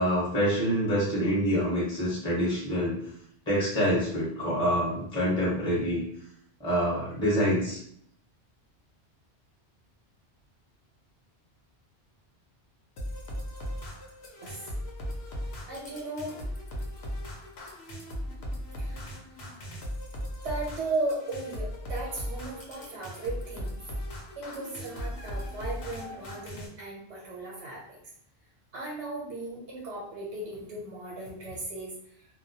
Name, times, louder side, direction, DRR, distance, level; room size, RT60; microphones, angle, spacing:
voice 1, 0.0-3.0 3.5-6.0 6.6-7.8, equal, 5° left, -7 dB, 0.8 m, -26 dB
sound 1, 13.0-26.7, equal, 75° left, 0.8 m, -38 dB
voice 2, 14.4-14.7 15.1-15.2 15.7-16.4 18.8-19.2 20.4-23.7 24.4-28.0 28.7-32.3, right 2 dB, 85° right, -4 dB, 0.9 m, -36 dB
2.2 x 2.1 x 2.6 m, 0.68 s
omnidirectional pair, 1.1 m